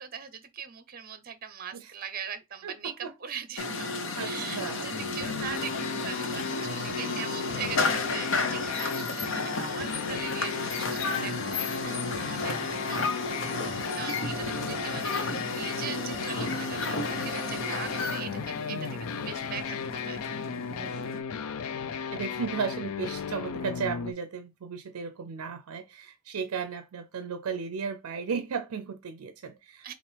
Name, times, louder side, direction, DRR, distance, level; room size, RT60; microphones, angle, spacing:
voice 1, 0.0-3.9 4.2-13.2 13.5-20.2 29.8-29.9, right 7 dB, 40° right, 0.7 m, -41 dB
voice 2, 2.6-3.1 4.2-4.9 11.2-11.4 13.9-14.0 18.7-19.0 20.7-21.2 22.1-29.9, right 6 dB, 80° right, 0.4 m, -35 dB
sound 1, 3.6-21.2, left 3 dB, 60° left, 0.7 m, -33 dB
sound 2, 4.9-24.1, left 6 dB, 85° left, 0.4 m, -36 dB
5.8 x 2.6 x 3.3 m
head